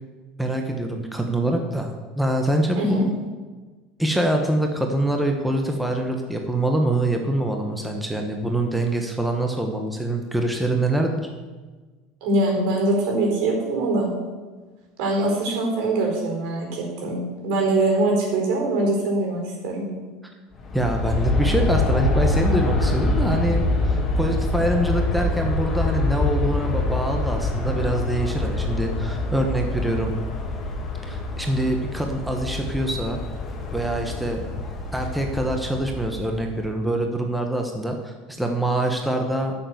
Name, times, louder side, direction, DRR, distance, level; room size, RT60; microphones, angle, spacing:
voice 1, 0.4-3.1 4.0-11.1 20.2-20.3 20.7-30.1 31.0-33.2 33.7-34.4 34.9-39.5, right 1 dB, 5° right, 2 dB, 1.2 m, -25 dB
voice 2, 2.8-3.1 12.2-14.1 15.0-19.9 27.6-27.8, right 2 dB, 70° right, 1 dB, 4.6 m, -23 dB
Aircraft, 20.5-36.6, left 2 dB, 25° left, 2.2 m, -25 dB
9.8 x 7.1 x 7.8 m, 1.3 s
supercardioid pair, 125°, 0 cm